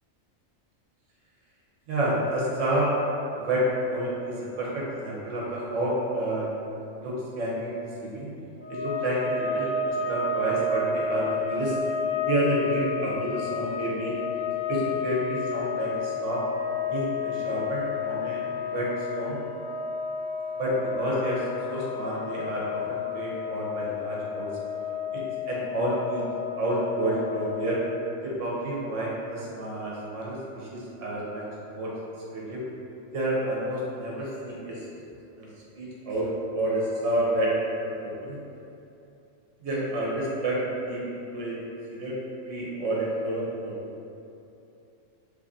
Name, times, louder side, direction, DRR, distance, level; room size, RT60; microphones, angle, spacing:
voice 1, 1.9-2.9 3.3-6.5 7.0-7.7 8.0-8.3 8.7-11.8 12.2-14.2 14.7-16.4 16.9-18.9 19.2-19.4 20.5-21.4 21.7-24.5 25.1-26.2 26.6-27.8 28.2-31.4 31.7-31.9 32.3-32.6 33.1-34.8 35.4-35.5 35.7-37.5 37.8-38.4 39.6-40.6 40.9-41.0 41.3-41.5 41.9-42.2 42.5-43.7, right 1 dB, 70° right, -5 dB, 1.1 m, -29 dB
sound 1, 8.6-28.2, left 5 dB, 40° right, 1.5 m, -31 dB
3.2 x 2.6 x 3.5 m, 2.8 s
omnidirectional pair, 1.4 m